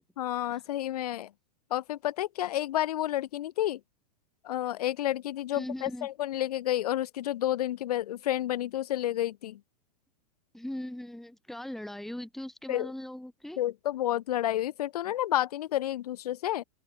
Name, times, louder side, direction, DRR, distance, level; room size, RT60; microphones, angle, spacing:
voice 1, 0.2-1.3 1.7-3.8 4.4-9.6 12.7-12.9 13.6-16.6, left 13 dB, 65° left, 7.8 m, -30 dB
voice 2, 5.5-6.1 10.5-13.6, left 1 dB, ahead, 6.0 m, -39 dB
open air
supercardioid pair, 160°, 21 cm